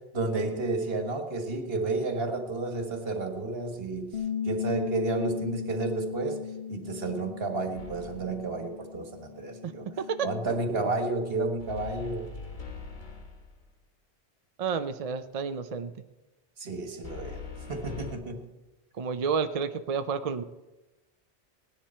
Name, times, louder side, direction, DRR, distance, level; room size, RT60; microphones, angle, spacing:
voice 1, 0.0-6.4 6.7-9.9 10.2-12.3 16.6-18.4, right 3 dB, 60° right, 5 dB, 1.7 m, -31 dB
Bass guitar, 4.1-10.4, left 8 dB, 70° left, 1.4 m, -37 dB
sound 1, 7.8-8.4 11.6-13.6 17.0-18.1, left 5 dB, 45° left, 1.5 m, -41 dB
voice 2, 10.0-10.3 14.6-15.9 19.0-20.4, right 6 dB, 45° right, 9 dB, 0.5 m, -30 dB
17.5 x 10.0 x 4.4 m, 1.0 s
omnidirectional pair, 1.1 m